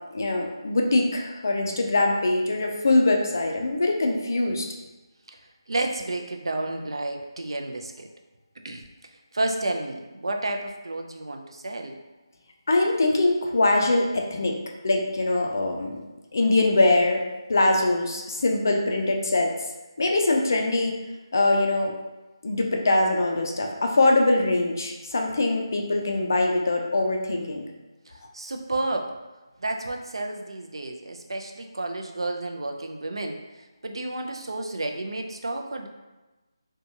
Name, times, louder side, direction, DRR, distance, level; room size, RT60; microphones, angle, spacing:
voice 1, 0.1-4.7 12.7-14.6 14.8-16.0 16.3-17.2 17.5-19.5 20.0-20.9 21.3-21.9 22.4-27.6, left 2 dB, 40° left, 1 dB, 0.3 m, -23 dB
voice 2, 5.7-8.1 8.6-8.8 9.3-12.0 28.1-29.1 29.6-35.9, right 2 dB, 70° right, 3 dB, 0.4 m, -31 dB
2.8 x 2.2 x 2.6 m, 1.1 s
figure-of-eight pair, 175°, 3 cm